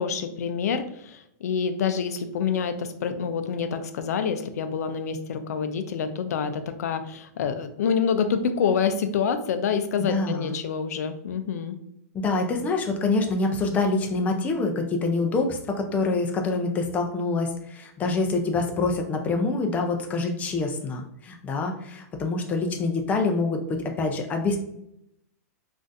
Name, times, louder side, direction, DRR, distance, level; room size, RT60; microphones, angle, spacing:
voice 1, 0.0-11.8, left 6 dB, 75° left, 9 dB, 0.4 m, -27 dB
voice 2, 10.1-10.6 12.1-24.6, left 3 dB, 15° left, 3 dB, 0.5 m, -26 dB
3.7 x 2.5 x 2.5 m, 0.78 s
hypercardioid pair, 145°, 9 cm